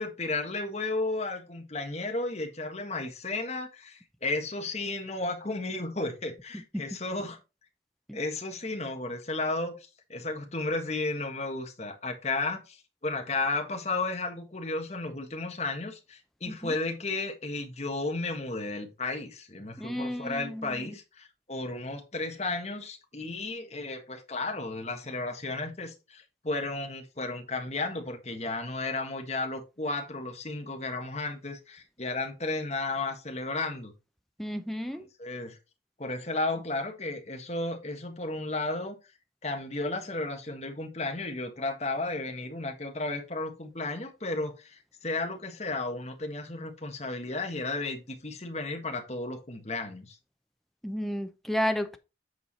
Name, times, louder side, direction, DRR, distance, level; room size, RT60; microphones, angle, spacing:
voice 1, 0.0-7.4 8.1-9.8 10.1-12.8 13.0-33.9 35.2-35.6 36.0-38.9 39.4-50.1, left 2 dB, 40° left, 1.6 m, -33 dB
voice 2, 19.8-20.9 34.4-35.1 50.8-52.0, equal, ahead, 0.7 m, -32 dB
8.1 x 4.7 x 4.1 m
head